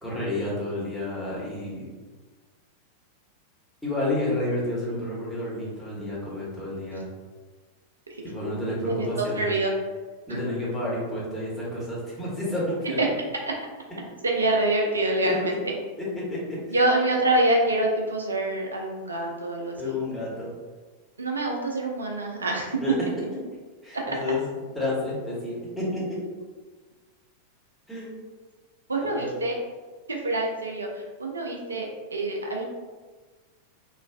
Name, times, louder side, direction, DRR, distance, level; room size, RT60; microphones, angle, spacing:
voice 1, 0.0-1.9 3.8-7.1 8.2-9.5 10.3-13.1 15.2-15.3 16.0-16.8 19.8-20.5 22.8-23.1 23.8-24.4 24.7-26.2 27.9-28.1 29.1-29.3, left 1 dB, ahead, -8 dB, 1.1 m, -30 dB
voice 2, 8.9-9.7 10.3-10.4 13.0-13.1 14.2-15.5 16.7-20.0 21.2-22.8 24.1-24.2 28.9-29.6 30.1-32.7, right 2 dB, 75° right, 0 dB, 0.3 m, -26 dB
3.1 x 2.3 x 2.3 m, 1.4 s
figure-of-eight pair, 90°, 0 cm